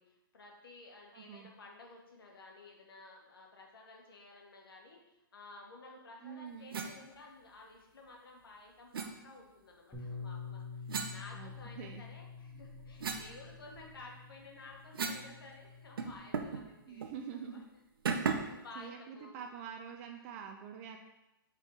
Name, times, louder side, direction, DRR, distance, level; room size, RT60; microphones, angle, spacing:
voice 1, 0.0-5.0 5.3-17.0 17.4-17.6 18.1-19.4, left 3 dB, 85° left, 0 dB, 1.6 m, -54 dB
voice 2, 1.1-1.5 6.2-6.7 11.3-12.0 16.9-17.6 18.7-21.0, right 7 dB, 40° right, 4 dB, 0.6 m, -46 dB
sound 1, 6.7-6.9 8.9-9.1 10.9-11.9 12.4-15.3 15.6-15.7 16.0-16.6 17.0-17.2 18.1-18.6, right 5 dB, 75° right, 0.8 m, -38 dB
Bass guitar, 9.9-16.2, left 5 dB, 15° left, 2.3 m, -48 dB
5.4 x 4.2 x 4.7 m, 0.95 s
hypercardioid pair, 140°, 12 cm